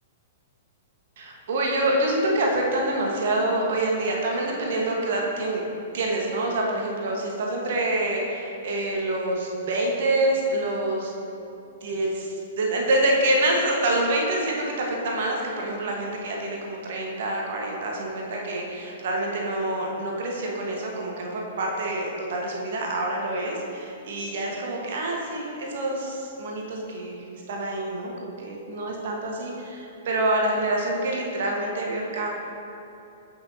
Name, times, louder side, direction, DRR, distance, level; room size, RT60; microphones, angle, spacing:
voice 1, 1.2-5.6 5.9-11.1 11.8-32.3, right 1 dB, 55° right, -1 dB, 1.5 m, -26 dB
15.0 x 6.0 x 2.9 m, 2.8 s
figure-of-eight pair, 110°, 0 cm